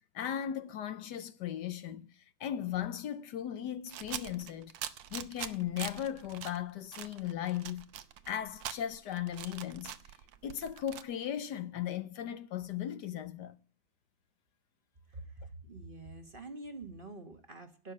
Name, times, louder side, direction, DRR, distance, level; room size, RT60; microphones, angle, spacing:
voice 1, 0.1-4.7 5.1-7.9 8.3-9.9 10.4-13.6, left 10 dB, 70° left, 1.3 m, -37 dB
sound 1, 3.9-6.6 6.9-11.0, right 10 dB, 80° right, 1.6 m, -43 dB
voice 2, 15.1-17.9, right 2 dB, 30° right, 1.4 m, -46 dB
11.5 x 7.4 x 8.3 m
omnidirectional pair, 2.0 m